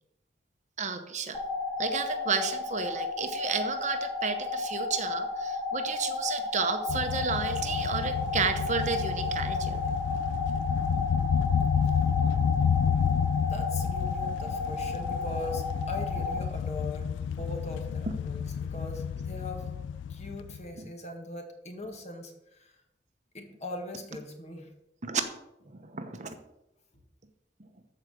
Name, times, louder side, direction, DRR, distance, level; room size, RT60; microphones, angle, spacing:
voice 1, 0.8-1.4 1.8-9.8 20.8-20.9 25.0-25.2 25.7-26.4, right 5 dB, 40° right, 7 dB, 1.0 m, -32 dB
sound 1, 1.3-16.4, left 3 dB, 25° left, 1.7 m, -33 dB
sound 2, 6.9-20.7, left 7 dB, 80° left, 0.3 m, -30 dB
voice 2, 13.4-19.8 20.1-22.8 23.3-24.7, left 1 dB, 40° left, 4 dB, 1.8 m, -41 dB
13.5 x 4.9 x 6.6 m, 0.87 s
head